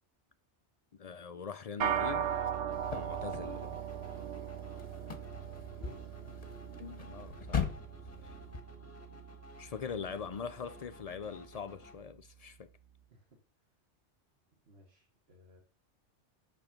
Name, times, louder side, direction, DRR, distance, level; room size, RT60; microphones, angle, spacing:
voice 1, 1.0-2.3 2.9-3.7 6.8-7.7 8.2-8.3 9.6-12.7, left 6 dB, 60° left, 0.4 m, -42 dB
sound 1, 1.8-11.3, right 9 dB, 80° right, 1.1 m, -39 dB
sound 2, 2.0-11.9, left 2 dB, 15° left, 1.2 m, -55 dB
sound 3, 2.7-8.6, left 6 dB, 35° left, 1.0 m, -41 dB
voice 2, 5.8-6.1 8.1-8.3 13.1-13.4 14.7-15.6, equal, 60° right, 1.8 m, -58 dB
6.7 x 5.8 x 5.1 m
omnidirectional pair, 1.2 m